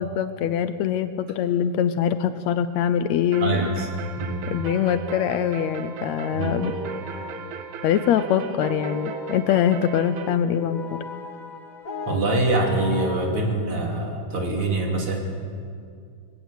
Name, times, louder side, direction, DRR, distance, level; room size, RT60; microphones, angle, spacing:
voice 1, 0.0-3.6 4.5-6.7 7.8-11.0, left 9 dB, 75° left, 12 dB, 1.9 m, -23 dB
sound 1, 3.3-10.4, right 6 dB, 75° right, 2.6 m, -37 dB
voice 2, 3.4-4.5 6.3-6.6 12.1-15.2, right 2 dB, 45° right, 1 dB, 3.5 m, -24 dB
sound 2, 5.3-13.3, left 2 dB, 40° left, 0.6 m, -37 dB
23.5 x 16.5 x 8.3 m, 2.3 s
omnidirectional pair, 3.4 m